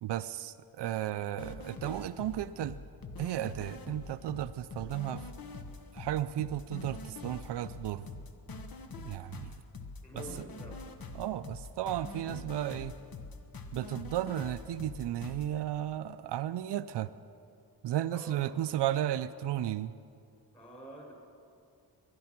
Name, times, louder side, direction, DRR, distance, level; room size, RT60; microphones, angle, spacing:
voice 1, 0.0-2.8 3.2-5.2 5.9-8.0 9.0-9.5 10.4-10.5 11.1-12.9 13.7-17.1 17.8-19.9, right 12 dB, 90° right, 12 dB, 0.5 m, -34 dB
sound 1, 1.4-15.5, left 3 dB, 60° left, 1.2 m, -44 dB
voice 2, 10.0-10.8 18.1-18.6 20.5-21.1, right 1 dB, 15° left, -1 dB, 5.3 m, -47 dB
22.0 x 10.5 x 5.9 m, 2.4 s
cardioid pair, 80°, 40 cm